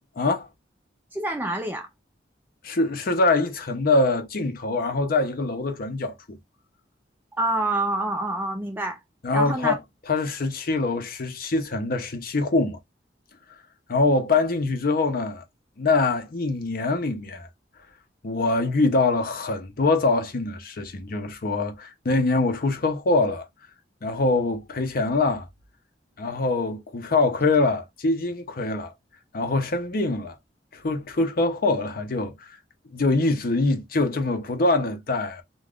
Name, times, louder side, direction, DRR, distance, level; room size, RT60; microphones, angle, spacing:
voice 1, 0.2-0.5 2.6-6.4 9.2-9.8 10.1-12.8 13.9-15.4 15.8-17.5 18.2-23.5 24.0-25.5 26.2-28.9 29.3-30.4 30.7-32.5 32.9-35.4, left 3 dB, 55° left, 0.6 m, -24 dB
voice 2, 1.1-1.9 7.4-9.0 9.3-9.8, right 2 dB, 10° right, 0.5 m, -27 dB
2.4 x 2.3 x 3.4 m
head